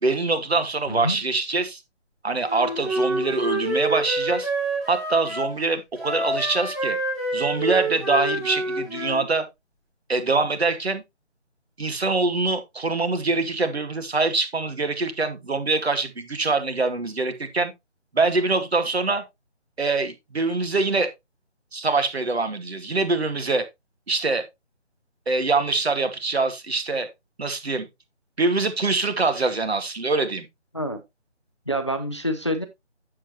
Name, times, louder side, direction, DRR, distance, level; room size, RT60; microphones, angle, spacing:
voice 1, 0.0-1.8 2.2-4.5 4.9-7.0 7.3-9.5 10.1-11.0 11.8-17.7 18.1-19.2 19.8-21.1 21.7-23.6 24.1-24.4 25.3-27.1 27.4-27.9 28.4-30.5, right 3 dB, 60° right, 2.1 m, -24 dB
voice 2, 0.9-1.2 30.7-31.0 31.7-32.7, equal, 25° left, 0.6 m, -27 dB
Wind instrument woodwind instrument, 2.4-5.5 6.0-9.2, right 2 dB, ahead, 2.7 m, -27 dB
8.8 x 7.6 x 2.9 m
figure-of-eight pair, 160°, 35 cm